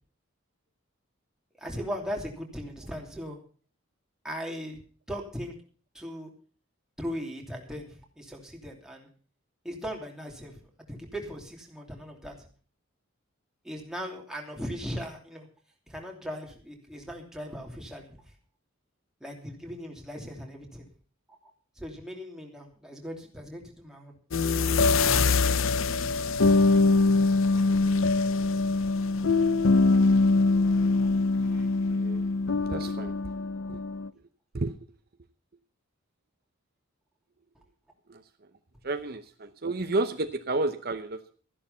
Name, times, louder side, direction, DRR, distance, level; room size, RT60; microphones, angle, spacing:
voice 1, 1.6-3.4 4.2-4.8 5.1-5.5 5.9-6.3 7.0-9.1 9.6-10.6 10.9-12.4 13.6-15.5 15.9-18.2 19.2-20.9 21.3-21.5 21.8-24.1, equal, 5° right, 0 dB, 3.0 m, -38 dB
sound 1, 24.3-34.1, left 3 dB, 80° left, 0.7 m, -23 dB
voice 2, 31.5-32.2 32.7-33.1 33.7-33.8 34.5-34.7 38.1-38.2 38.8-41.3, right 2 dB, 50° right, 8 dB, 0.8 m, -31 dB
14.0 x 11.0 x 5.6 m, 0.43 s
head